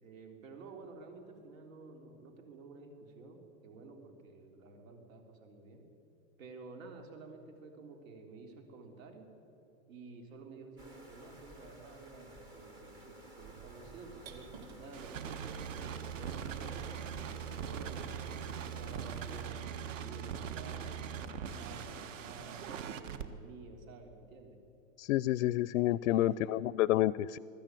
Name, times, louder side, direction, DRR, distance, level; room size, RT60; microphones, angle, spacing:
voice 1, 0.0-5.9 6.4-9.3 9.9-14.5 14.8-18.4 18.8-24.6 25.9-26.6, right 3 dB, 90° right, 4 dB, 3.6 m, -51 dB
sound 1, 10.8-19.5, right 1 dB, 10° right, 0.5 m, -55 dB
sound 2, 13.4-18.8, right 8 dB, 50° right, 2.3 m, -54 dB
sound 3, 14.9-23.2, right 7 dB, 70° right, 1.5 m, -41 dB
voice 2, 25.0-27.4, left 14 dB, 80° left, 20 dB, 0.6 m, -29 dB
21.0 x 14.0 x 9.1 m, 2.8 s
supercardioid pair, 170°, 39 cm